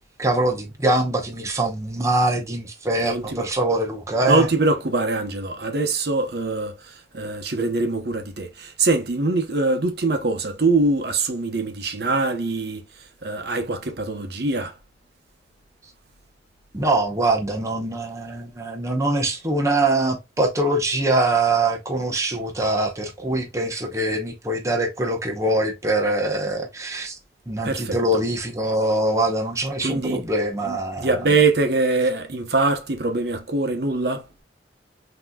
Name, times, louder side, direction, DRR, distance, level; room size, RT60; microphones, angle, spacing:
voice 1, 0.2-4.5 16.7-27.2 27.5-31.1, right 2 dB, 15° right, 0.8 m, -23 dB
voice 2, 3.0-3.5 4.2-12.8 13.2-14.7 27.6-28.2 29.8-30.2 30.7-34.3, right 3 dB, 65° right, 0.9 m, -23 dB
5.8 x 2.9 x 2.2 m
head